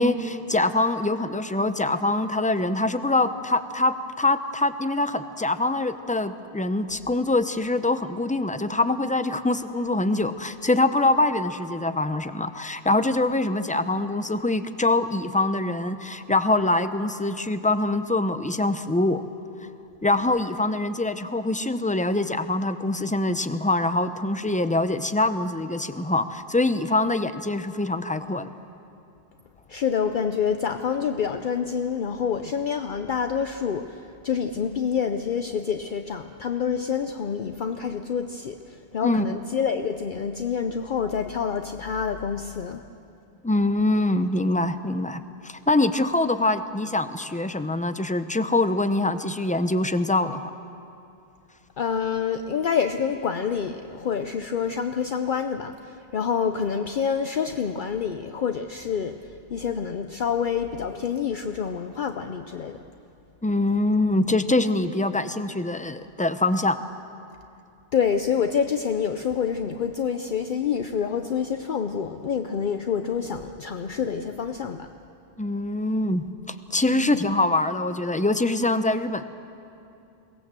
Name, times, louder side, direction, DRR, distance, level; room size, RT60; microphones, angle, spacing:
voice 1, 0.0-19.2 20.0-28.5 39.0-39.2 43.4-50.5 63.4-66.8 75.4-79.2, left 2 dB, 10° left, 10 dB, 0.5 m, -24 dB
voice 2, 29.7-42.8 51.8-59.2 59.5-62.8 67.9-74.9 76.9-77.2, left 7 dB, 55° left, 7 dB, 0.8 m, -27 dB
22.5 x 18.0 x 7.5 m, 2.7 s
omnidirectional pair, 1.0 m